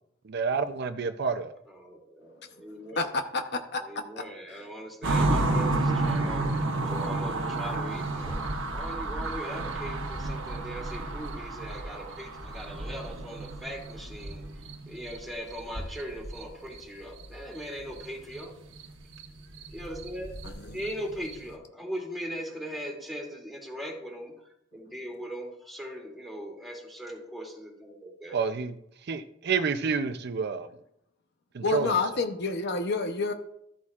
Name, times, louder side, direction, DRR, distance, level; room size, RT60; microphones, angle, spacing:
voice 1, 0.3-1.5 28.3-28.7 29.1-30.7 31.5-31.9, right 5 dB, 60° right, 0.5 m, -29 dB
voice 2, 1.7-3.2 3.8-14.5 14.9-18.5 19.7-20.4 20.7-28.4, equal, ahead, 2.5 m, -40 dB
voice 3, 2.9-4.0 4.5-4.6 20.4-20.8 31.6-33.3, left 3 dB, 60° left, 0.8 m, -29 dB
sound 1, 5.0-15.2 15.5-16.4 16.7-16.8 17.2-18.1 18.3-18.4 18.7-21.5, right 2 dB, 75° right, 1.2 m, -31 dB
13.5 x 8.3 x 2.4 m
head